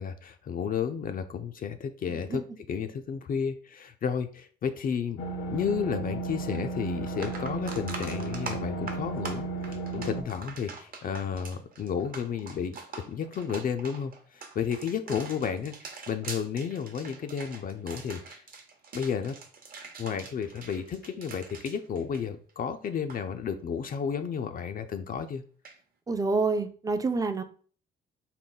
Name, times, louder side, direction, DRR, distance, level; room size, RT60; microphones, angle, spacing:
voice 1, 0.0-5.2 5.5-12.8 13.1-18.4 18.9-19.4 20.0-25.4, left 7 dB, 45° left, 8 dB, 0.4 m, -32 dB
voice 2, 2.1-2.6 15.1-15.2 26.1-27.4, right 3 dB, 20° right, 9 dB, 0.4 m, -28 dB
sound 1, 5.2-10.2, right 3 dB, 80° left, 0.7 m, -34 dB
sound 2, 6.6-6.7 7.0-22.7 22.9-23.2 25.6-25.8, right 4 dB, 45° right, 0.8 m, -43 dB
3.7 x 2.2 x 3.9 m, 0.43 s
cardioid pair, 90°, 20 cm